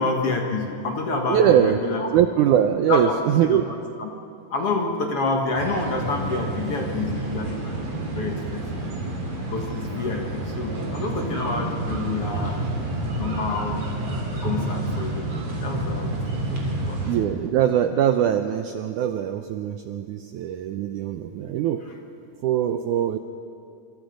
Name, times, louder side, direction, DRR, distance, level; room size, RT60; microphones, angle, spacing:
voice 1, 0.0-2.1 2.9-3.2 3.4-3.6 4.0-4.1 4.5-7.7 8.1-8.6 9.5-12.7 13.1-13.8 14.4-16.2 16.5-17.0, left 3 dB, 50° left, 2 dB, 2.0 m, -28 dB
voice 2, 1.3-1.8 2.1-3.7 17.1-21.8 22.4-23.2, right 10 dB, 80° right, 7 dB, 1.8 m, -22 dB
sound 1, 5.5-17.2, right 1 dB, 45° right, 4.3 m, -29 dB
26.0 x 25.5 x 5.2 m, 2.4 s
omnidirectional pair, 4.3 m